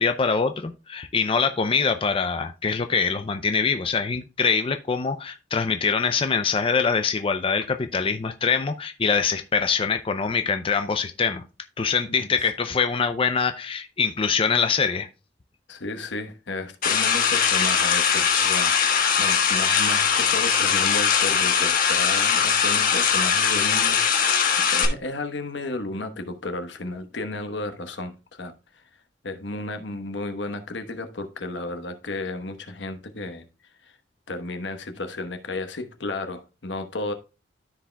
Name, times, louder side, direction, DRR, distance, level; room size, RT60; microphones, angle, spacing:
voice 1, 0.0-11.4 11.8-15.1, left 5 dB, 30° left, 0.4 m, -24 dB
voice 2, 15.7-18.7 19.2-28.8 29.2-33.5 33.8-33.9 34.3-37.1, left 2 dB, 75° left, 1.1 m, -33 dB
sound 1, 16.8-24.9, left 7 dB, 50° left, 1.3 m, -21 dB
13.5 x 4.8 x 2.2 m
head